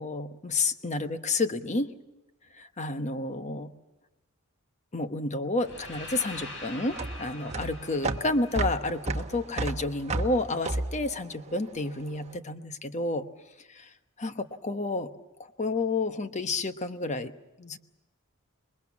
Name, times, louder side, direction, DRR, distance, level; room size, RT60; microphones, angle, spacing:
voice 1, 0.0-1.9 2.6-3.7 4.9-13.3 13.7-13.9 14.2-15.1 15.6-17.3 17.6-17.8, left 2 dB, 35° left, 9 dB, 1.0 m, -30 dB
sound 1, 5.6-9.6, left 2 dB, 60° left, 4.9 m, -44 dB
sound 2, 5.6-12.1, right 2 dB, 30° right, 1.2 m, -33 dB
27.5 x 22.5 x 7.2 m, 1.0 s
head